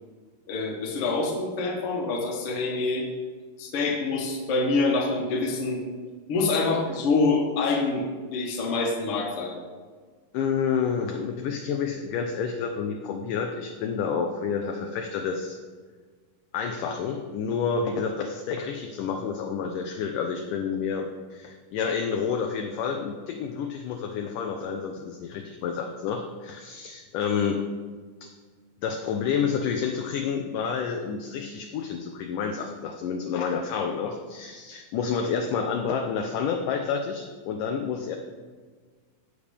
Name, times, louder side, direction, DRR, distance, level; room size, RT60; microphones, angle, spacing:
voice 1, 0.5-3.1 3.6-5.8 6.3-9.6, left 3 dB, 50° left, 0 dB, 1.9 m, -26 dB
voice 2, 10.3-15.6 16.5-27.6 28.2-28.3 28.8-38.2, left 6 dB, 75° left, 3 dB, 2.0 m, -29 dB
15.5 x 6.6 x 3.4 m, 1.5 s
omnidirectional pair, 4.3 m